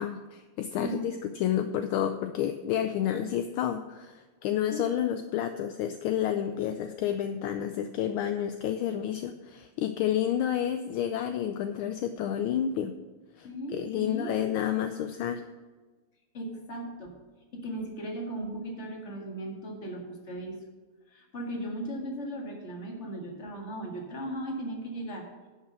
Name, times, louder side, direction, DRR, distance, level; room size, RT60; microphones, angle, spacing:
voice 1, 0.0-12.9 13.4-15.4, left 10 dB, 75° left, 8 dB, 1.3 m, -30 dB
voice 2, 0.7-1.2 4.7-5.2 8.8-9.0 13.4-14.4 16.3-17.2 17.5-20.6 21.1-25.3, right 1 dB, 35° left, 0 dB, 2.1 m, -37 dB
11.0 x 5.5 x 6.3 m, 1.3 s
omnidirectional pair, 2.4 m